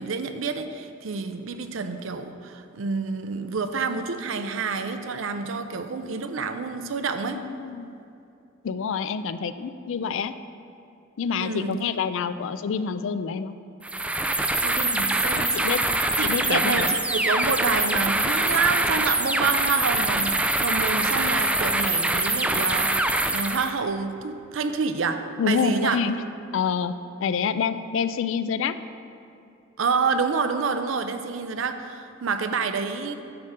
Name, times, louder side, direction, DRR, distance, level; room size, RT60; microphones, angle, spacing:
voice 1, 0.0-7.4 11.4-11.8 14.6-15.7 16.2-26.0 29.8-33.1, right 4 dB, 70° right, 8 dB, 0.5 m, -28 dB
voice 2, 7.3-7.9 8.6-10.3 11.2-13.6 15.5-15.8 16.2-16.9 25.4-26.2 26.5-26.9 27.2-28.7, left 6 dB, 65° left, 12 dB, 0.4 m, -27 dB
sound 1, 13.8-23.7, right 2 dB, 5° right, 0.3 m, -24 dB
10.5 x 3.7 x 6.5 m, 2.6 s
head